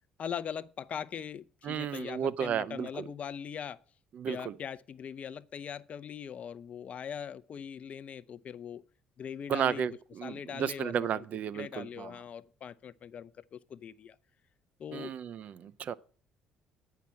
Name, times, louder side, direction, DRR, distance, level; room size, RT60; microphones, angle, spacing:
voice 1, 0.2-3.8 4.3-8.8 9.2-9.9 10.2-11.2 11.5-14.2 14.8-15.1, left 8 dB, 45° left, 0.6 m, -41 dB
voice 2, 1.6-3.1 4.1-4.6 9.5-12.2 14.9-15.9, right 8 dB, 50° right, 0.6 m, -33 dB
9.2 x 5.8 x 8.4 m
figure-of-eight pair, 50°, 3 cm